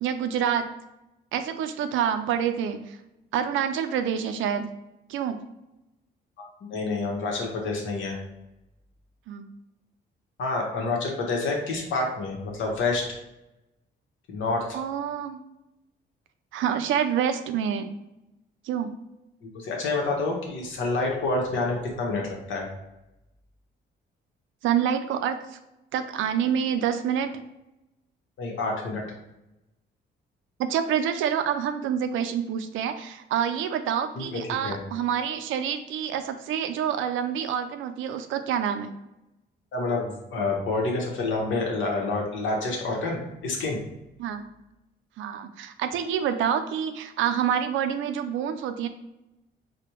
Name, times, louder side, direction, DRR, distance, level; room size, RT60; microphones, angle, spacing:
voice 1, 0.0-0.7 1.3-3.0 3.3-4.7 5.1-5.4 9.3-9.5 14.7-15.4 16.5-17.9 18.6-18.9 24.6-25.6 25.9-27.3 30.6-38.9 44.2-44.4 45.2-48.9, right 8 dB, 80° right, 8 dB, 0.4 m, -27 dB
voice 2, 6.4-8.2 10.4-13.1 14.3-14.8 19.5-22.7 28.4-29.0 34.2-34.8 39.7-43.8, left 3 dB, 75° left, 0 dB, 1.0 m, -28 dB
4.1 x 2.2 x 3.0 m, 0.94 s
cardioid pair, 90°, 20 cm